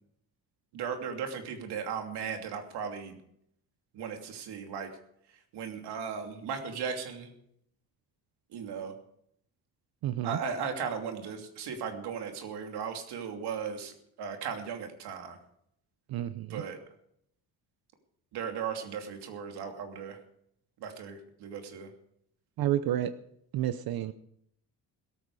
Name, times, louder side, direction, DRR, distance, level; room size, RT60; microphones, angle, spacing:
voice 1, 0.7-3.2 3.9-4.9 5.5-7.3 8.5-8.9 10.2-15.4 16.5-16.8 18.3-20.2 20.8-21.9, right 6 dB, 90° right, 3 dB, 2.9 m, -36 dB
voice 2, 10.0-10.4 16.1-16.6 22.6-23.1 23.5-24.1, right 12 dB, 65° right, 12 dB, 0.8 m, -30 dB
17.0 x 14.0 x 4.9 m, 0.72 s
cardioid pair, 155°, 38 cm